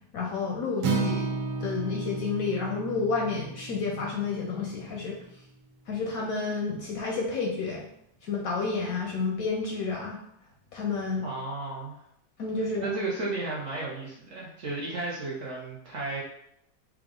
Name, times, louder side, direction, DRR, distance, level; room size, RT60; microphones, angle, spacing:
voice 1, 0.1-1.3 1.6-5.2 5.9-7.8 8.2-10.2 10.7-11.2 12.4-12.9, left 4 dB, 70° left, 0 dB, 0.8 m, -30 dB
Acoustic guitar, 0.8-5.0, right 4 dB, 90° right, 1.3 m, -33 dB
voice 2, 11.2-12.0 12.8-16.2, right 2 dB, 55° right, -4 dB, 0.9 m, -33 dB
4.7 x 2.0 x 3.6 m, 0.74 s
omnidirectional pair, 1.8 m